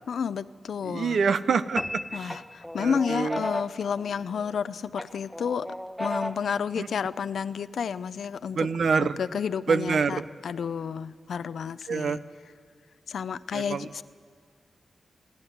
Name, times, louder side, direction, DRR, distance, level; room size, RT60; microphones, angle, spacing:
voice 1, 0.1-1.2 2.1-5.7 6.0-8.7 9.0-12.2 13.1-14.0, left 7 dB, 85° left, 15 dB, 0.6 m, -31 dB
voice 2, 0.8-2.4 2.8-3.4 6.8-6.9 8.5-9.2 9.7-10.2 11.9-12.2 13.5-14.0, right 5 dB, 75° right, 12 dB, 0.8 m, -26 dB
sound 1, 1.3-1.9 2.3-4.6 5.0-6.6, left 1 dB, ahead, 1.1 m, -36 dB
sound 2, 1.8-3.3, left 1 dB, 15° left, 0.7 m, -36 dB
29.5 x 12.0 x 9.4 m, 2.1 s
cardioid pair, 70°, 0 cm